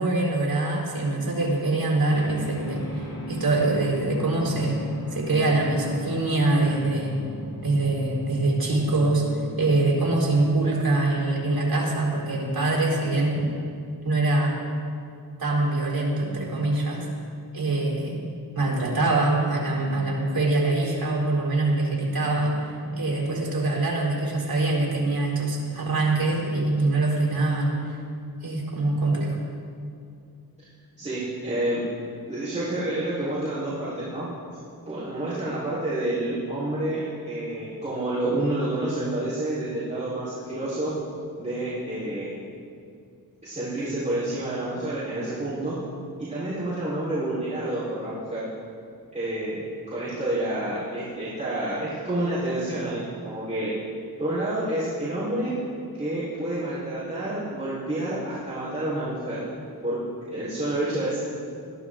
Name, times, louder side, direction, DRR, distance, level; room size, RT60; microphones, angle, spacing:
voice 1, 0.0-4.8 5.1-7.2 7.6-13.4 14.0-14.6 15.4-17.1 17.5-18.2 18.5-28.0 28.4-29.4, right 2 dB, 70° right, -4 dB, 4.2 m, -24 dB
sound 1, 2.1-10.4, left 1 dB, 85° left, 2.5 m, -38 dB
voice 2, 23.0-23.4 31.0-31.8 32.3-34.3 34.9-40.9 41.4-42.4 43.4-45.8 46.2-48.5 49.1-53.7 54.2-55.5 55.9-59.4 59.8-60.0 60.3-61.2, right 1 dB, 20° right, -11 dB, 4.2 m, -29 dB
20.5 x 14.0 x 3.8 m, 2.5 s
wide cardioid pair, 135°, 37 cm